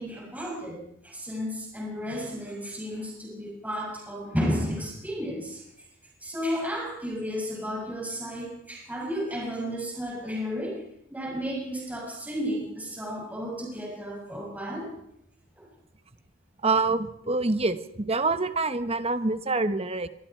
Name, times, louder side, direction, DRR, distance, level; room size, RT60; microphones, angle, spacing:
voice 1, 0.0-5.6 6.2-10.8 11.1-14.9 15.5-15.7, equal, 10° right, -2 dB, 6.6 m, -33 dB
voice 2, 16.6-20.1, right 3 dB, 30° right, 11 dB, 1.2 m, -26 dB
26.0 x 23.0 x 4.6 m, 0.77 s
head